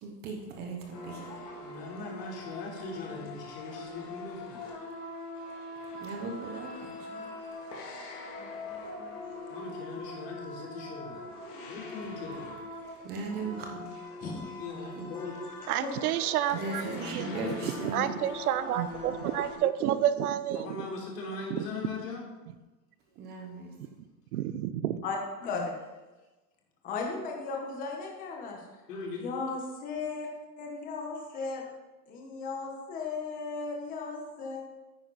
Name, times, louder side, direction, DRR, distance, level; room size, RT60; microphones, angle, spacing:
voice 1, 0.0-1.4 6.0-7.1 13.0-13.9 15.0-15.1 16.6-18.1 23.2-23.8, right 3 dB, 20° right, 1 dB, 0.9 m, -38 dB
sound 1, 0.9-19.6, left 2 dB, 35° left, 1.8 m, -42 dB
voice 2, 1.6-4.6 9.5-11.2 11.7-12.6 14.6-15.3 16.8-17.8 19.1-19.3 20.5-22.3 28.9-29.3, left 3 dB, 80° left, -3 dB, 3.8 m, -40 dB
voice 3, 8.4-9.2 14.2-14.3 15.8-15.9 25.0-25.8 26.8-28.6 29.2-30.3 30.6-31.7 32.1-34.6, left 4 dB, 15° left, 0 dB, 1.1 m, -36 dB
voice 4, 15.7-17.3 17.9-20.7 21.5-21.7 24.3-25.0, right 11 dB, 65° right, 13 dB, 0.8 m, -29 dB
9.7 x 9.0 x 4.1 m, 1.2 s
supercardioid pair, 175°, 47 cm